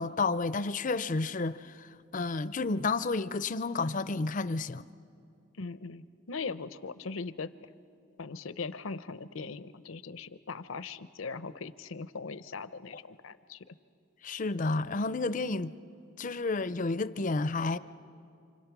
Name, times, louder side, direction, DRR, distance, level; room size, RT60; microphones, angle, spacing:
voice 1, 0.0-1.7 2.1-4.9 14.2-15.7 16.2-17.8, left 3 dB, 40° left, 0.5 m, -31 dB
voice 2, 5.6-7.7 8.2-13.7, left 4 dB, 75° left, 0.7 m, -40 dB
29.0 x 26.5 x 6.1 m
head